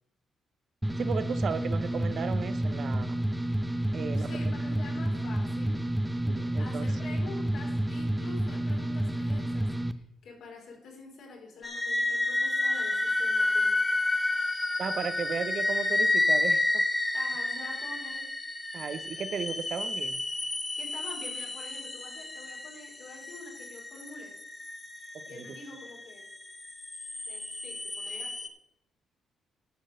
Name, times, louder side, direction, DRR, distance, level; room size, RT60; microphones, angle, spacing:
sound 1, 0.8-9.9, right 1 dB, 10° right, 0.7 m, -30 dB
voice 1, 1.0-3.2 3.9-4.3 6.2-7.1 14.8-16.8 18.7-20.2 25.1-25.5, right 6 dB, 55° right, 12 dB, 0.8 m, -35 dB
voice 2, 4.1-5.7 6.6-13.8 17.1-18.2 20.7-24.3 25.0-26.3 27.3-28.3, left 3 dB, 70° left, -1 dB, 4.4 m, -47 dB
sound 2, 11.6-28.5, left 2 dB, 20° left, 1.3 m, -30 dB
10.5 x 6.3 x 6.5 m, 0.80 s
cardioid pair, 90°, 0 cm